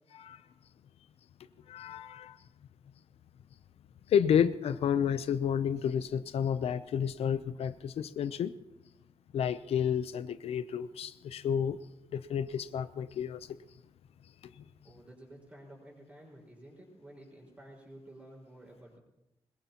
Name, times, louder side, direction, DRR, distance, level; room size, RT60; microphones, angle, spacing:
voice 1, 1.7-2.4 4.1-8.5 9.3-11.8 12.1-13.6 14.6-14.7, left 8 dB, 85° left, 0.6 m, -30 dB
voice 2, 14.8-19.0, right 1 dB, 15° right, 4.8 m, -52 dB
21.5 x 20.5 x 2.9 m
wide cardioid pair, 175°, 10 cm